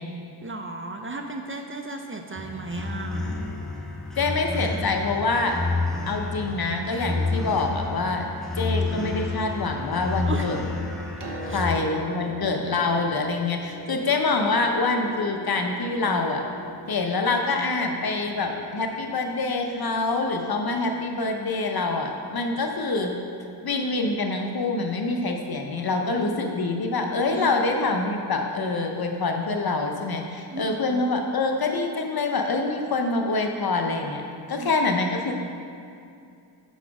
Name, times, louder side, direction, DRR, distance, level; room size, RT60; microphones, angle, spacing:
voice 1, 0.4-3.2 10.3-10.4 11.5-11.6 27.3-27.6 30.5-31.0 34.6-34.7, right 2 dB, 25° right, 3 dB, 0.5 m, -34 dB
sound 1, 2.4-11.8, left 3 dB, ahead, 1.0 m, -30 dB
voice 2, 4.2-5.6 6.1-8.3 8.6-10.6 11.4-16.5 16.9-23.1 23.6-34.2 34.5-35.4, left 3 dB, 50° left, 3 dB, 0.8 m, -25 dB
Piano, 11.2-24.7 25.8-25.9, right 2 dB, 65° right, 0.9 m, -43 dB
5.7 x 4.2 x 6.0 m, 2.5 s
cardioid pair, 55°, 46 cm